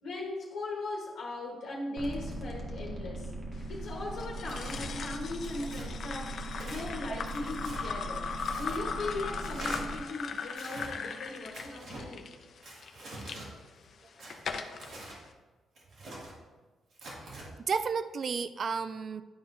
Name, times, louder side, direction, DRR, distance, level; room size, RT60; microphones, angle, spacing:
voice 1, 0.0-3.3 3.7-6.4 6.6-8.3 8.5-12.3, left 2 dB, 75° left, -3 dB, 1.2 m, -38 dB
sound 1, 2.0-10.0, right 1 dB, 30° right, 1.2 m, -40 dB
sound 2, 4.2-13.4 13.9-14.9, left 5 dB, 55° left, 0.6 m, -39 dB
Tearing, 4.5-4.8 5.4-5.9 6.5-6.9 7.3-7.8 8.4-8.8 9.4-9.8 10.5-10.9 11.5-12.0 12.6-13.5 14.2-15.2 15.8-16.3 16.9-17.5, right 1 dB, 70° right, 2.3 m, -45 dB
voice 2, 17.2-19.2, right 5 dB, 45° right, 12 dB, 0.3 m, -33 dB
11.0 x 4.8 x 2.6 m, 1.3 s
cardioid pair, 110°, 0 cm